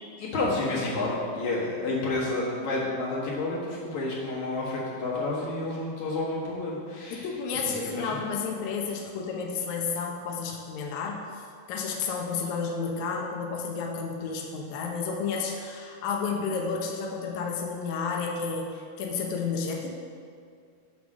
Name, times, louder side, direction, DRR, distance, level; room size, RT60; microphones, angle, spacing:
voice 1, 0.2-7.3 7.6-8.2, left 2 dB, 60° left, -6 dB, 2.7 m, -30 dB
voice 2, 7.1-11.4 11.7-19.9, left 5 dB, 85° left, 0 dB, 1.6 m, -31 dB
7.3 x 4.8 x 6.2 m, 2.2 s
omnidirectional pair, 4.3 m